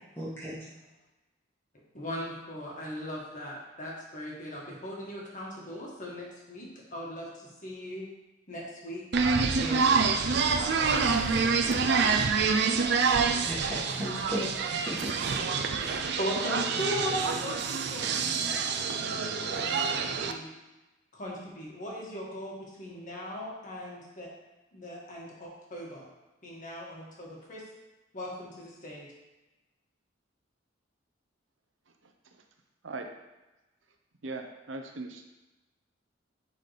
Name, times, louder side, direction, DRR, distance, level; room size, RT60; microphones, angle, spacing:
voice 1, 0.2-0.6 13.4-15.1, equal, 10° left, -10 dB, 1.7 m, -36 dB
voice 2, 1.9-8.1 8.5-9.0 9.5-9.9 10.2-11.4 16.2-18.6 19.0-19.7 20.0-20.5 21.1-24.3 24.7-26.1 26.4-27.6 28.1-29.1, equal, 40° left, -3 dB, 1.8 m, -38 dB
sound 1, 9.1-20.3, right 5 dB, 60° right, 0.5 m, -27 dB
voice 3, 34.2-35.3, right 3 dB, 85° right, 5 dB, 0.8 m, -39 dB
10.5 x 4.1 x 3.3 m, 1.1 s
head